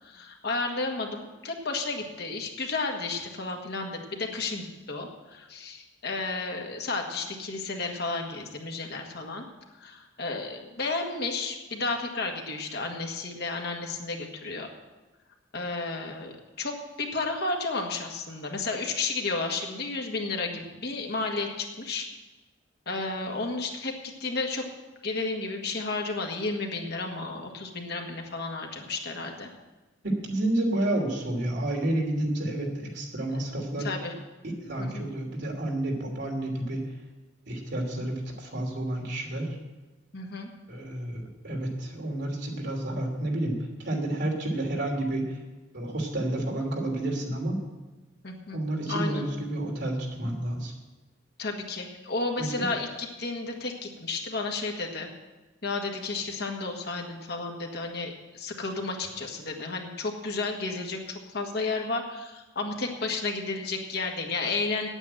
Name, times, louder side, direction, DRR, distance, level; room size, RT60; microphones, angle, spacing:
voice 1, 0.0-9.5 9.8-14.7 15.5-22.1 22.9-24.6 25.0-29.5 33.3-33.4 33.8-34.1 34.8-35.0 40.1-40.5 48.2-48.6 48.9-49.2 51.4-55.1 55.6-64.9, left 3 dB, 55° left, 2 dB, 1.7 m, -32 dB
voice 2, 30.0-33.9 34.6-36.9 37.5-39.6 40.7-45.4 45.7-47.6 48.5-50.7 52.4-52.7, right 1 dB, 60° right, 0 dB, 3.0 m, -30 dB
9.4 x 9.0 x 9.0 m, 1.2 s
head